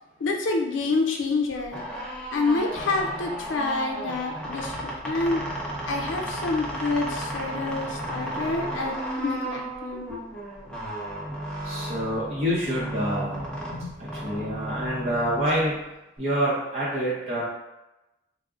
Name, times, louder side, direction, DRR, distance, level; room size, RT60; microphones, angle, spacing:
voice 1, 0.0-1.8 2.3-5.4 5.9-10.1 13.7-13.9, left 3 dB, 90° left, 2 dB, 0.4 m, -28 dB
sound 1, 1.6-16.2, right 1 dB, 5° left, 0.4 m, -34 dB
voice 2, 11.6-13.4 14.0-15.7 16.2-17.4, equal, 35° right, -8 dB, 0.7 m, -27 dB
3.6 x 2.0 x 3.5 m, 0.99 s
head